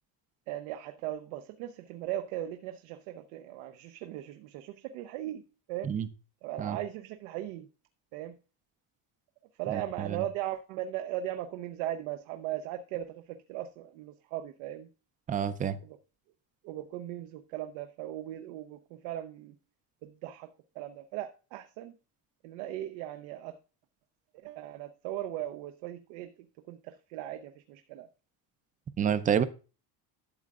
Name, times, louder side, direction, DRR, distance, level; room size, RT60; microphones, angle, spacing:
voice 1, 0.5-5.4 5.7-5.9 6.4-7.7 8.1-8.4 9.6-14.9 15.8-16.0 16.6-19.6 20.0-22.0 22.4-23.5 24.4-26.3 26.7-28.1, right 12 dB, 85° right, 8 dB, 0.8 m, -38 dB
voice 2, 9.7-10.2 15.3-15.8 29.0-29.4, right 8 dB, 20° right, 13 dB, 0.3 m, -29 dB
12.0 x 7.6 x 2.4 m, 0.33 s
cardioid pair, 150°, 45 cm